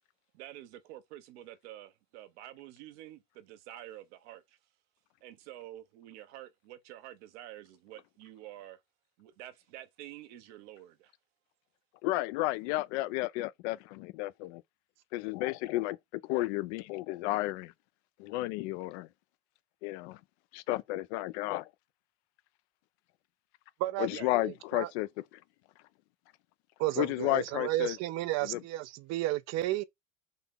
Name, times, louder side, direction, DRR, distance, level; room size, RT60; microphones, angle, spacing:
voice 1, 0.3-4.6 5.2-8.8 9.2-11.1 24.1-24.3, right 13 dB, 70° right, 0.9 m, -48 dB
voice 2, 12.0-14.6 15.1-17.7 18.2-19.1 19.8-20.2 20.5-21.7 24.0-25.1 27.0-28.0 28.4-28.6, left 18 dB, 70° left, 0.5 m, -32 dB
voice 3, 24.4-24.9 26.8-29.8, right 15 dB, 50° right, 0.5 m, -32 dB
3.9 x 2.9 x 3.6 m
hypercardioid pair, 90°, 35 cm